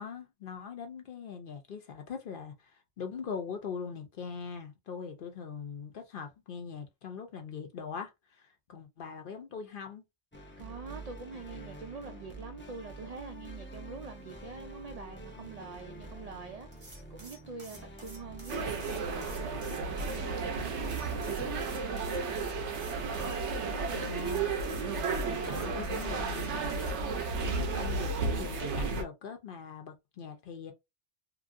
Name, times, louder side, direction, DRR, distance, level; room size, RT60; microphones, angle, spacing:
voice 1, 0.0-8.1 8.4-10.0 23.9-24.5 25.2-26.8 27.4-30.7, left 6 dB, 55° left, 0.7 m, -41 dB
sound 1, 10.3-28.2, right 1 dB, 15° left, 0.5 m, -48 dB
voice 2, 10.6-22.3 22.9-24.0, right 4 dB, 65° right, 0.3 m, -45 dB
sound 2, 16.7-20.2 20.8-23.4 24.2-26.9, right 2 dB, 30° right, 0.7 m, -51 dB
sound 3, 18.5-29.0, right 4 dB, 85° right, 1.0 m, -33 dB
2.9 x 2.6 x 2.5 m
omnidirectional pair, 1.2 m